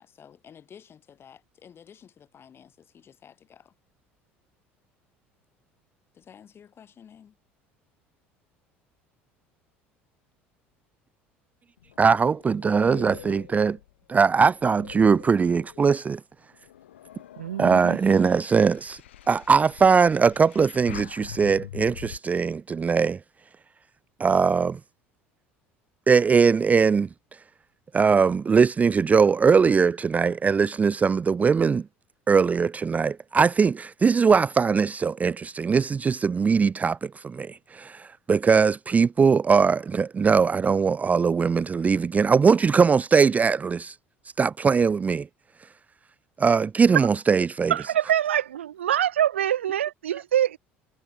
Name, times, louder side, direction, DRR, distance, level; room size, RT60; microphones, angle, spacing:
voice 1, 0.0-3.7 6.1-7.4, left 8 dB, 40° left, 6.2 m, -51 dB
sound 1, 11.8-16.0 16.5-22.2, left 12 dB, 75° left, 2.7 m, -44 dB
voice 2, 12.0-13.8 14.1-16.2 17.6-19.0 19.3-23.2 24.2-24.8 26.1-27.1 27.9-31.8 32.3-43.9 44.4-45.3 46.4-47.7, right 5 dB, 25° right, 0.4 m, -21 dB
voice 3, 17.4-18.0 47.7-50.6, right 10 dB, 80° right, 0.5 m, -25 dB
figure-of-eight pair, 65°, 6 cm